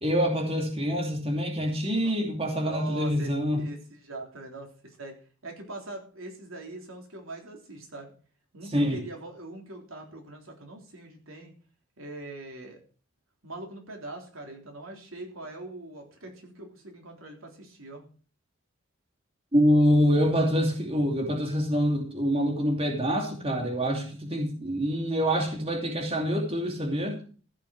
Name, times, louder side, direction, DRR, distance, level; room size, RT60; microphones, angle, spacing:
voice 1, 0.0-3.6 8.7-9.0 19.5-27.2, equal, 30° right, 1 dB, 2.7 m, -25 dB
voice 2, 2.5-3.8 4.0-5.2 5.4-8.1 8.5-11.5 12.0-12.8 13.4-18.0 23.8-24.1, right 2 dB, 90° right, 2 dB, 3.6 m, -42 dB
15.0 x 6.7 x 6.5 m, 0.40 s
head